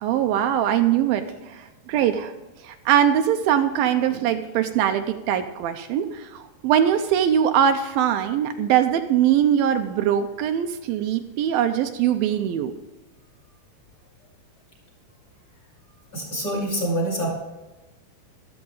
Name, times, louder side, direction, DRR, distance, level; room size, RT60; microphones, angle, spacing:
voice 1, 0.0-2.3 2.6-12.7, right 9 dB, 80° right, 7 dB, 2.5 m, -22 dB
voice 2, 16.1-17.3, right 1 dB, 20° left, -3 dB, 6.1 m, -26 dB
13.5 x 13.0 x 3.9 m, 1.1 s
omnidirectional pair, 4.3 m